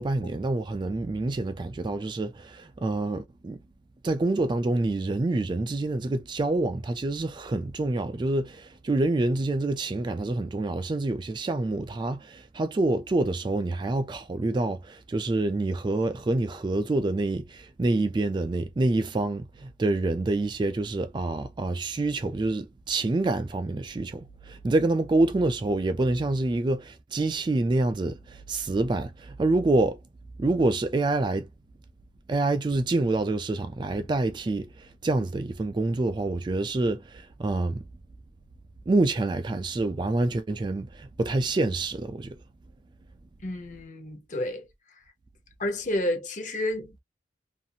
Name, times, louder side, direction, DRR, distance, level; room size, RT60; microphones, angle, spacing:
voice 1, 0.0-3.6 4.0-30.0 30.4-31.5 32.3-37.8 38.9-42.4, right 2 dB, 25° right, 0.3 m, -27 dB
voice 2, 43.4-44.7 45.6-47.0, left 1 dB, 45° left, 0.8 m, -30 dB
2.6 x 2.4 x 2.7 m
head